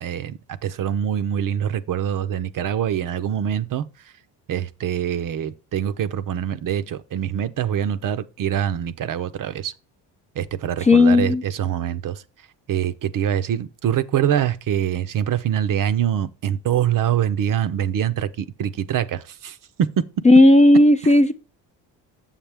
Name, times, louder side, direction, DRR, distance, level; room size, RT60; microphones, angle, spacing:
voice 1, 0.0-3.9 4.5-9.7 10.4-12.2 12.7-20.0, right 10 dB, 45° right, 0.6 m, -24 dB
voice 2, 10.8-11.4 20.2-21.3, left 2 dB, 20° left, 0.3 m, -13 dB
7.3 x 7.0 x 3.4 m
cardioid pair, 95°, 44 cm